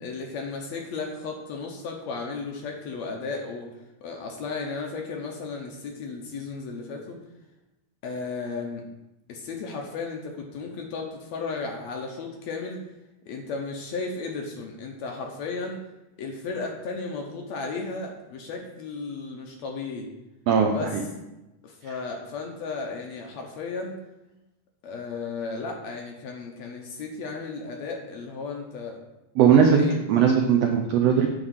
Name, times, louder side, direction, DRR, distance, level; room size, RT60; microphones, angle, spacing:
voice 1, 0.0-3.7 4.0-7.2 8.0-8.9 9.3-12.8 13.3-15.8 16.2-20.1 20.7-21.0 21.6-24.0 24.8-29.0 29.5-30.0, left 4 dB, 70° left, 1 dB, 1.8 m, -34 dB
voice 2, 20.5-21.0 29.4-29.8 30.1-31.3, right 7 dB, 85° right, 2 dB, 1.4 m, -19 dB
9.0 x 3.6 x 6.3 m, 0.98 s
omnidirectional pair, 3.7 m